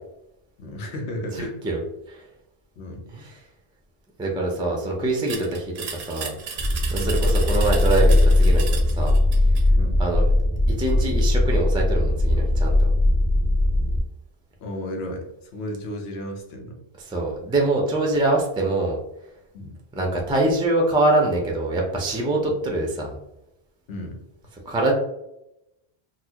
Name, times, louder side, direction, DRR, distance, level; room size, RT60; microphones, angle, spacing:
voice 1, 0.6-1.6 2.8-3.0 7.0-7.2 9.8-10.0 14.6-15.3 15.5-16.8 19.5-19.8 23.9-24.2, left 1 dB, 85° left, 2 dB, 1.0 m, -33 dB
voice 2, 1.3-1.8 2.1-2.2 3.1-3.4 4.2-5.7 6.0-6.4 6.9-8.7 8.9-9.1 10.0-10.3 10.8-12.9 17.0-19.0 19.9-23.2 24.7-24.9, right 2 dB, 10° right, -1 dB, 0.3 m, -24 dB
sound 1, 5.3-9.7, right 6 dB, 75° right, 0.8 m, -35 dB
sound 2, 6.6-14.0, left 1 dB, 25° left, 0.9 m, -19 dB
4.1 x 2.0 x 2.8 m, 0.86 s
omnidirectional pair, 1.1 m